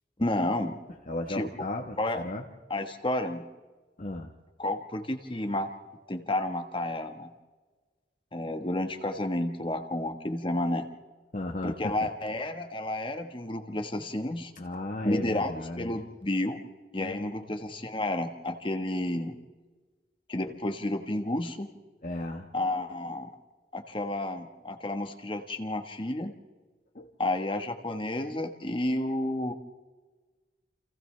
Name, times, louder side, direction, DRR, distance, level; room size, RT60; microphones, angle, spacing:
voice 1, 0.2-0.8 1.3-1.5 2.0-2.2 2.7-3.4 4.6-5.7 6.1-7.3 8.3-10.9 11.6-14.5 15.0-16.6 16.9-19.4 20.3-21.7 22.5-23.3 23.7-26.3 27.2-29.5, left 1 dB, 25° left, 5 dB, 1.4 m, -31 dB
voice 2, 1.1-2.4 4.0-4.3 11.3-11.7 14.6-15.9 17.0-17.4 22.0-22.5 26.9-27.1, left 2 dB, 45° left, 2 dB, 1.2 m, -35 dB
30.0 x 28.0 x 3.3 m, 1.3 s
head